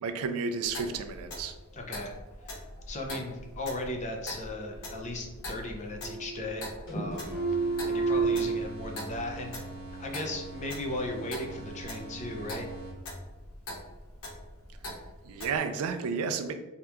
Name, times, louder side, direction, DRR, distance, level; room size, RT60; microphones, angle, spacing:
voice 1, 0.0-1.6 14.8-14.9 15.2-16.5, right 5 dB, 70° right, 8 dB, 0.3 m, -32 dB
Clock, 0.6-15.6, left 1 dB, 70° left, 0.7 m, -43 dB
voice 2, 1.7-2.1 2.5-2.6 2.9-9.6 10.0-12.7, left 1 dB, 30° left, 2 dB, 0.4 m, -37 dB
sound 1, 4.4-5.4 5.7-6.6 6.9-8.5, right 4 dB, 50° left, 1.0 m, -30 dB
sound 2, 7.2-13.3, right 2 dB, 45° right, 0.8 m, -43 dB
2.8 x 2.3 x 3.3 m, 1.1 s
head